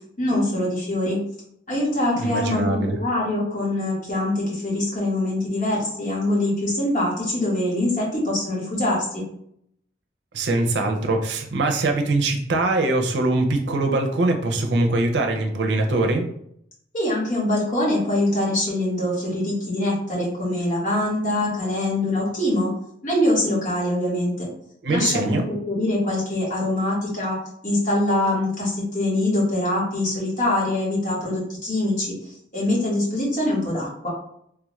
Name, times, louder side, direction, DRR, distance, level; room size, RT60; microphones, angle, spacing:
voice 1, 0.2-1.2 1.7-9.2 16.9-22.7 23.0-24.5 24.9-27.4 27.6-32.1 32.5-34.1, left 1 dB, 45° left, -6 dB, 1.5 m, -23 dB
voice 2, 2.2-3.0 10.3-16.3 24.8-25.4, right 2 dB, 80° right, 3 dB, 0.5 m, -22 dB
3.4 x 2.4 x 3.1 m, 0.70 s
head